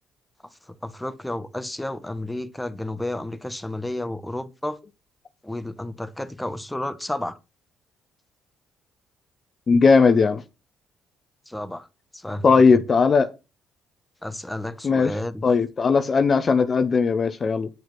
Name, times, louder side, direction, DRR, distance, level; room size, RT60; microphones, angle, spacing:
voice 1, 0.4-4.8 5.4-7.4 11.5-11.9 12.1-12.8 14.2-15.4, left 1 dB, 10° left, 1.2 m, -32 dB
voice 2, 9.7-10.4 12.4-13.3 14.8-15.1 15.4-17.7, left 5 dB, 45° left, 0.8 m, -18 dB
9.4 x 4.7 x 6.0 m
hypercardioid pair, 50°, 0 cm